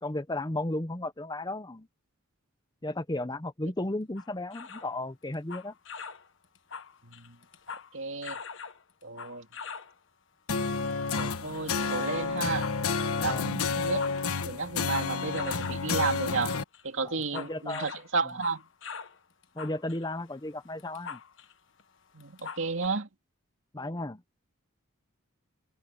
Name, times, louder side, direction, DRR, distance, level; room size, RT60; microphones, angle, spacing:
voice 1, 0.0-1.9 2.8-5.7 13.2-13.5 17.0-17.9 19.5-21.2 23.7-24.2, left 1 dB, 20° left, 0.8 m, -34 dB
sound 1, 4.2-4.9 5.3-6.3 6.5-7.9 8.2-9.9 10.9-11.7 12.4-13.1 13.7-15.9 16.2-16.5 16.7-19.2 19.4-21.5 21.8-21.9 22.2-22.9, left 6 dB, 60° left, 1.5 m, -42 dB
voice 2, 7.0-7.4 7.9-8.4 9.0-9.5 11.1-12.7 13.2-14.1 14.4-16.6 16.8-18.6 22.1-23.1, right 4 dB, 60° right, 2.6 m, -32 dB
sound 2, 10.5-16.6, left 4 dB, 85° left, 1.3 m, -30 dB
head